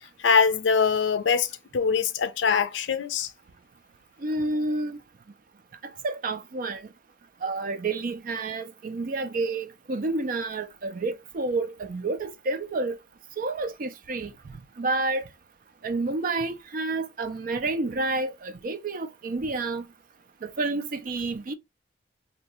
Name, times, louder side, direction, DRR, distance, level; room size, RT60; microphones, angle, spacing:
voice 1, 0.2-3.3, left 6 dB, 65° left, 0.4 m, -23 dB
voice 2, 4.2-5.0 6.0-6.9 7.4-13.0 13.4-14.3 14.8-15.3 15.8-19.9 20.4-21.5, right 3 dB, 45° right, 0.4 m, -29 dB
2.8 x 2.2 x 4.0 m
head